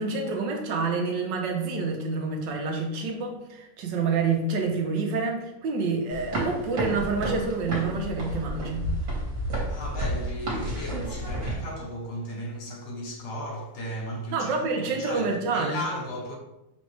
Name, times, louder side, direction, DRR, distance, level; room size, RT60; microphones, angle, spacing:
voice 1, 0.0-8.9 14.3-15.8, right 4 dB, 70° right, 1.3 m, -28 dB
sound 1, 6.1-11.5, right 1 dB, 50° right, 1.5 m, -31 dB
voice 2, 9.7-16.4, equal, 75° left, 1.6 m, -35 dB
5.3 x 3.1 x 3.1 m
omnidirectional pair, 2.1 m